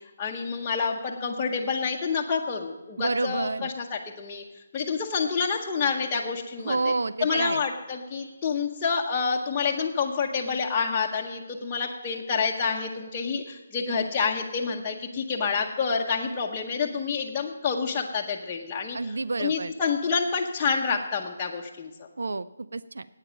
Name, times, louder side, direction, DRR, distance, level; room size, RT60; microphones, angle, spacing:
voice 1, 0.2-4.4 4.7-6.9 7.2-19.0 19.4-21.9, left 5 dB, 20° left, -4 dB, 0.8 m, -28 dB
voice 2, 3.0-3.7 6.6-7.6 18.9-19.7 22.2-23.1, right 3 dB, 80° right, 15 dB, 0.5 m, -29 dB
9.8 x 8.9 x 7.5 m, 1.1 s
hypercardioid pair, 165°, 0 cm